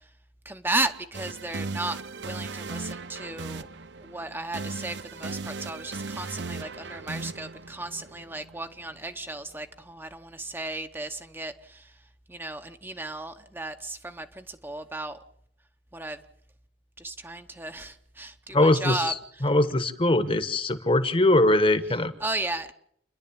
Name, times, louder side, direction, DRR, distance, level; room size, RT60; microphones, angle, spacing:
voice 1, 0.4-3.7 4.0-11.9 12.3-15.2 15.9-16.2 17.0-19.1 22.2-22.7, right 2 dB, 10° right, 8 dB, 0.8 m, -34 dB
sound 1, 1.1-9.1, right 3 dB, 70° right, 0.8 m, -37 dB
voice 2, 18.5-19.2 19.4-22.1, left 1 dB, 30° left, 12 dB, 1.2 m, -21 dB
28.5 x 11.5 x 8.6 m, 0.70 s
head